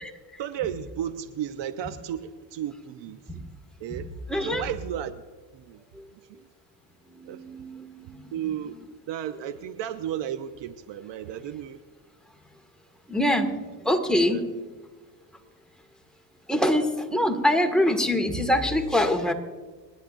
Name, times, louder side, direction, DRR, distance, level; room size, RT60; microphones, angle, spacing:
voice 1, 0.4-3.2 3.8-4.1 4.4-5.2 5.5-5.8 6.1-6.5 7.2-7.4 8.3-8.8 9.1-11.8 14.1-14.6, right 10 dB, 60° right, 11 dB, 0.9 m, -34 dB
voice 2, 4.3-4.6 6.0-6.1 7.1-8.3 13.1-13.5 13.8-14.4 16.5-19.3, left 1 dB, ahead, 3 dB, 1.9 m, -24 dB
29.5 x 10.5 x 2.6 m, 1.4 s
supercardioid pair, 85°, 50 cm